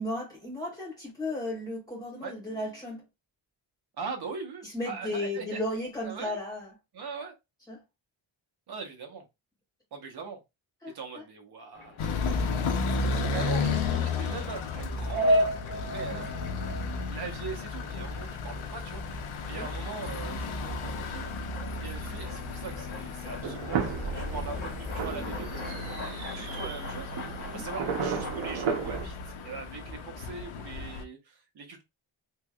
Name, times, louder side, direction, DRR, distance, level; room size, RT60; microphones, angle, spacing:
voice 1, 0.0-3.1 4.6-6.7 7.7-7.8 10.8-11.2 16.1-16.3 19.5-19.7 27.5-27.7, left 1 dB, 10° left, 2.1 m, -35 dB
voice 2, 4.0-5.6 6.0-6.4 6.9-7.3 8.7-9.3 9.9-10.4 10.9-15.6 15.8-21.3 21.8-27.1 27.5-31.8, right 5 dB, 55° right, 1.1 m, -41 dB
sound 1, 11.7-29.0, equal, 75° left, 1.1 m, -37 dB
sound 2, 12.0-31.0, left 4 dB, 90° left, 0.8 m, -34 dB
sound 3, 23.4-29.1, right 6 dB, 75° right, 0.9 m, -34 dB
3.4 x 3.1 x 2.3 m
wide cardioid pair, 180°, 47 cm